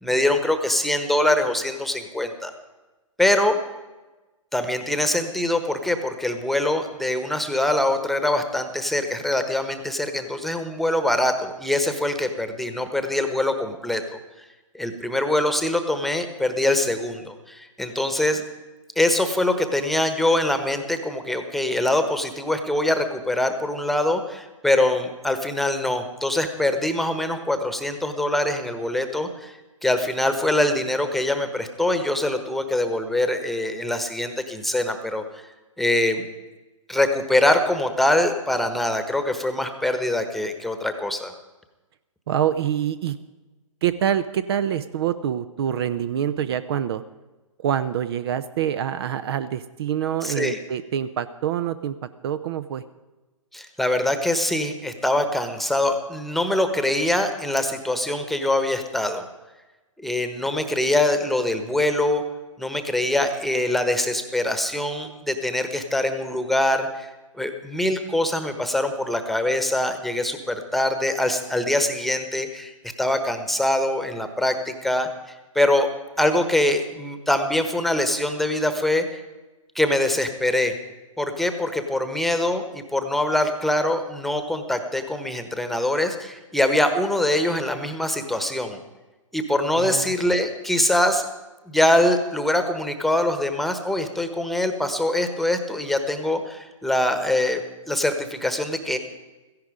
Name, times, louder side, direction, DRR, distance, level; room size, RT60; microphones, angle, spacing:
voice 1, 0.0-2.5 3.2-3.6 4.5-14.0 14.4-14.5 14.7-18.4 19.0-35.2 35.8-36.3 36.9-41.3 50.2-50.6 53.5-59.3 60.0-62.2 62.6-67.1 67.4-75.1 75.5-75.9 76.2-79.2 79.7-80.7 81.2-88.8 89.3-91.3 91.7-97.6 97.9-99.0, left 1 dB, ahead, 8 dB, 1.2 m, -23 dB
voice 2, 42.3-43.2 43.8-47.0 47.6-52.0 52.2-52.8 89.8-90.1, right 9 dB, 45° right, 13 dB, 0.7 m, -26 dB
16.5 x 14.5 x 5.0 m, 1.1 s
figure-of-eight pair, 125°, 17 cm